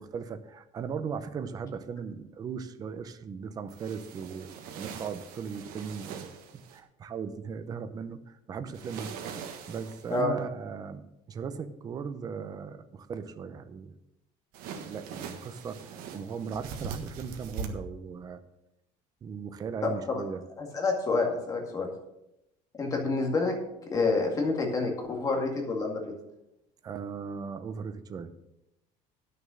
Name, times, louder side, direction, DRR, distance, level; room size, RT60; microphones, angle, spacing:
voice 1, 0.0-6.3 6.5-9.1 9.4-13.9 14.8-18.4 19.2-20.4 21.7-21.8 26.8-28.3, right 6 dB, 25° right, 10 dB, 0.6 m, -38 dB
sound 1, 3.7-6.8 8.7-10.2 14.5-17.7, right 6 dB, 70° right, 1.5 m, -42 dB
voice 2, 19.8-20.2 20.6-21.9 22.8-23.6 23.9-26.1, left 3 dB, 20° left, 1 dB, 2.1 m, -28 dB
11.0 x 6.6 x 6.4 m, 0.86 s
cardioid pair, 170°, 15 cm